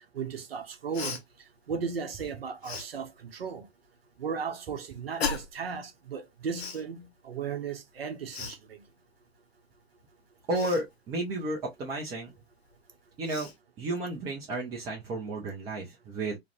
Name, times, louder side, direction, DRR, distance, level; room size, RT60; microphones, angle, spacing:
voice 1, 0.1-1.2 1.7-3.6 4.2-8.6, right 6 dB, 70° right, 0.7 m, -35 dB
Cough, 0.9-1.2 2.6-2.9 5.2-5.6 6.5-6.8 8.3-8.6 10.5-10.8 12.7-12.8 13.2-13.6, left 5 dB, 80° left, 0.6 m, -35 dB
voice 2, 10.5-12.3 13.2-13.5 13.8-16.4, right 1 dB, 10° right, 0.3 m, -32 dB
2.3 x 2.1 x 2.8 m
figure-of-eight pair, 110°, 31 cm